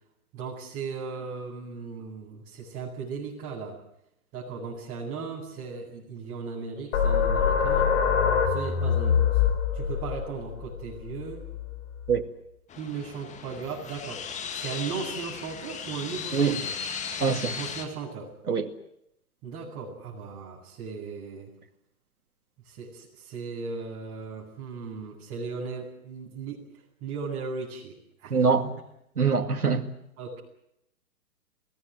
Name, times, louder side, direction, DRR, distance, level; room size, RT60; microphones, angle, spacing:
voice 1, 0.3-3.8 4.3-7.9 8.5-9.4 9.7-11.5 12.8-14.2 14.5-16.8 17.6-18.3 19.4-21.5 22.6-26.7 27.0-28.4 30.2-30.4, right 5 dB, 30° right, 7.8 m, -37 dB
sound 1, 6.9-12.2, left 7 dB, 50° left, 5.3 m, -25 dB
sound 2, 12.7-17.8, left 6 dB, 15° left, 2.0 m, -36 dB
voice 2, 17.2-17.6 18.5-18.7 28.3-28.7 29.2-29.8, right 5 dB, 85° right, 2.4 m, -23 dB
23.5 x 18.5 x 9.7 m
hypercardioid pair, 125°, 44 cm